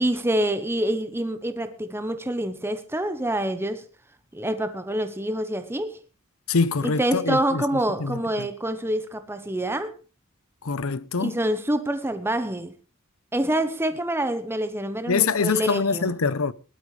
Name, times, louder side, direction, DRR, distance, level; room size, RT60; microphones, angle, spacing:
voice 1, 0.0-3.8 4.3-6.0 6.8-9.9 11.2-12.7 13.3-16.2, right 1 dB, 10° right, 1.0 m, -26 dB
voice 2, 6.5-7.6 8.0-8.5 10.6-11.4 15.1-16.5, left 5 dB, 85° left, 0.8 m, -24 dB
19.0 x 12.0 x 3.3 m
head